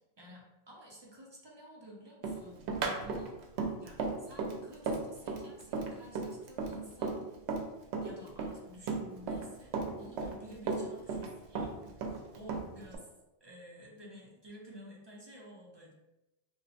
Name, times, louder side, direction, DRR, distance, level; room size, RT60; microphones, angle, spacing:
voice 1, 0.2-3.3 3.8-7.4 8.0-11.9 12.3-13.1 13.4-15.9, equal, 30° right, -3 dB, 0.5 m, -52 dB
Run, 2.2-7.7 7.9-9.5 9.7-11.3 11.6-13.0, right 4 dB, 80° right, 0.8 m, -35 dB
2.8 x 2.1 x 4.0 m, 0.96 s
omnidirectional pair, 1.1 m